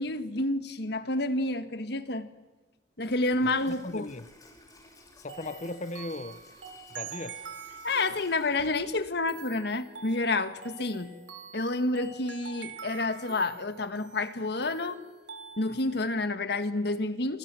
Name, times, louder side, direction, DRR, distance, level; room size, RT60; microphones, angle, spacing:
voice 1, 0.0-2.3 3.0-4.1 7.8-11.1 11.5-15.0 15.6-17.4, left 2 dB, 65° left, 1.6 m, -29 dB
Water tap faucet / Sink (filling or washing), 3.1-9.3, left 1 dB, 20° left, 5.1 m, -55 dB
voice 2, 3.7-4.3 5.2-6.4 6.9-7.4, left 2 dB, 40° left, 1.0 m, -37 dB
sound 1, 5.3-16.0, right 6 dB, 85° right, 4.1 m, -46 dB
27.5 x 26.0 x 7.6 m
head